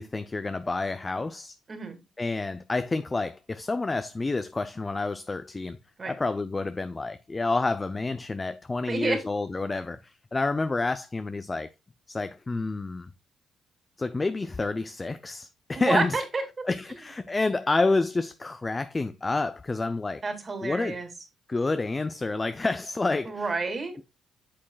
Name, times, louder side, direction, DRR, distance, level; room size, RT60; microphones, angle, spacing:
voice 1, 0.0-1.5 2.2-5.8 6.1-11.7 12.1-13.1 14.0-16.2 16.7-20.2 20.6-21.0 21.5-23.5, left 3 dB, 25° left, 0.5 m, -29 dB
voice 2, 1.7-2.0 6.0-6.1 8.9-9.2 15.7-16.4 20.2-21.1 23.2-24.0, right 3 dB, 35° right, 2.5 m, -29 dB
8.7 x 7.4 x 2.3 m
cardioid pair, 90°, 0 cm